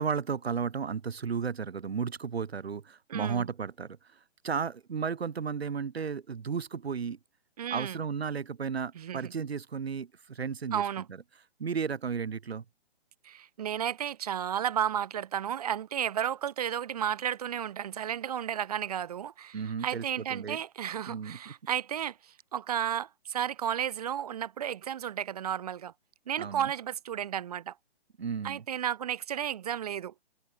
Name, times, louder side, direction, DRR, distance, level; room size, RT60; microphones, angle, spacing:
voice 1, 0.0-4.0 4.4-7.2 7.7-11.0 11.6-12.6 19.5-20.0 20.3-20.6 21.1-21.5 26.4-26.7 28.2-28.6, right 6 dB, 75° right, 1.3 m, -34 dB
voice 2, 3.1-3.5 7.6-8.0 9.0-9.3 10.7-11.1 13.2-25.9 26.3-27.7 28.4-30.1, right 10 dB, 40° right, 0.6 m, -33 dB
open air
figure-of-eight pair, 140°, 32 cm